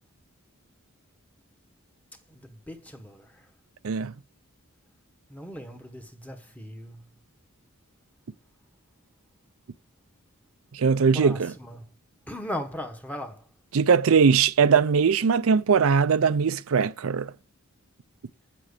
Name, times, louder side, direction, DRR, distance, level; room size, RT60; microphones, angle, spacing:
voice 1, 2.3-3.3 5.3-7.0 11.1-11.8 12.3-13.4, left 1 dB, 5° left, 1.2 m, -38 dB
voice 2, 10.7-11.5 13.7-17.3, right 6 dB, 75° right, 0.5 m, -20 dB
7.7 x 7.5 x 6.6 m
head